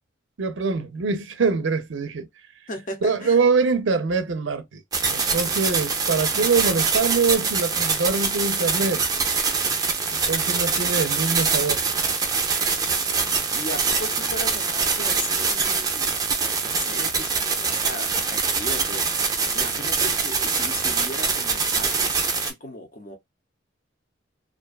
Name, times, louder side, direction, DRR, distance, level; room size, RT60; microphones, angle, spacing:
voice 1, 0.4-2.3 3.0-4.8 5.1-9.0 10.1-11.8, right 4 dB, 75° right, 0.5 m, -24 dB
voice 2, 2.7-3.4 13.5-16.2 16.6-23.2, left 1 dB, 40° left, 0.7 m, -37 dB
sound 1, 4.9-22.5, right 5 dB, 20° right, 0.4 m, -24 dB
2.5 x 2.2 x 2.3 m
head